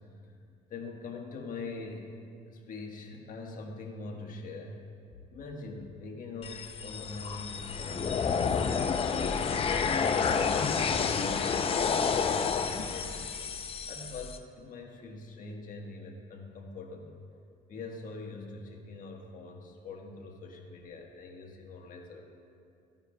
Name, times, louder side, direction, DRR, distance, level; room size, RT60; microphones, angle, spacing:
voice 1, 0.7-2.1 2.5-4.9 5.3-9.4 9.9-13.3 13.9-17.1 17.7-22.2, left 3 dB, 55° left, 1 dB, 1.3 m, -43 dB
sound 1, 6.4-14.4, left 6 dB, 35° left, 0.5 m, -30 dB
14.5 x 9.5 x 2.3 m, 2.4 s
cardioid pair, 110°, 17 cm